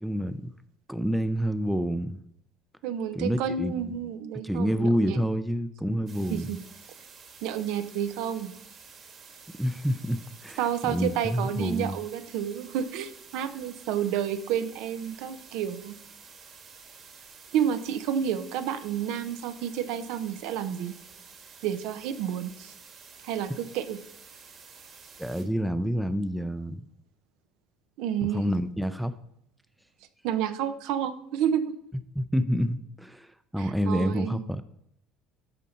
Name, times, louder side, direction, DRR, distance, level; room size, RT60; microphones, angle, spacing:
voice 1, 0.0-0.5 0.9-2.2 3.2-4.0 4.4-6.5 9.6-12.0 25.2-26.9 28.2-29.1 32.2-34.6, equal, ahead, 11 dB, 0.5 m, -28 dB
voice 2, 2.8-5.2 6.3-6.6 7.4-8.5 10.6-16.0 17.5-20.9 21.6-22.7 23.2-24.0 28.0-28.5 30.2-31.7 33.6-34.4, right 9 dB, 75° right, 11 dB, 0.7 m, -30 dB
sound 1, 6.1-25.4, right 5 dB, 40° right, 1.8 m, -50 dB
12.5 x 5.2 x 4.2 m, 0.74 s
supercardioid pair, 110°, 0 cm